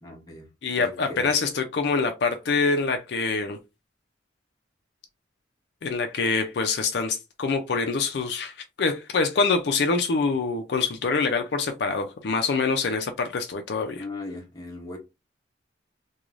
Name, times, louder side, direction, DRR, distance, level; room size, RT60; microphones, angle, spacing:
voice 1, 0.0-0.5 0.8-1.3 14.0-15.0, left 2 dB, 20° left, 0.7 m, -38 dB
voice 2, 0.6-3.6 5.8-14.0, left 4 dB, 60° left, 0.4 m, -25 dB
2.5 x 2.3 x 3.1 m
head